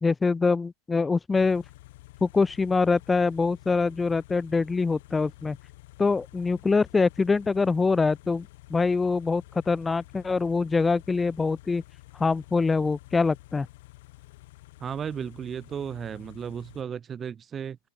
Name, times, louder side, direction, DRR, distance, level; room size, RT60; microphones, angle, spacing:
voice 1, 0.0-1.6 2.2-5.6 6.0-11.8 12.2-13.7, left 4 dB, 10° left, 0.8 m, -24 dB
Car / Idling, 1.3-16.8, left 19 dB, 50° left, 4.4 m, -50 dB
voice 2, 14.8-17.8, right 8 dB, 20° right, 0.5 m, -34 dB
open air
figure-of-eight pair, 90°, 0 cm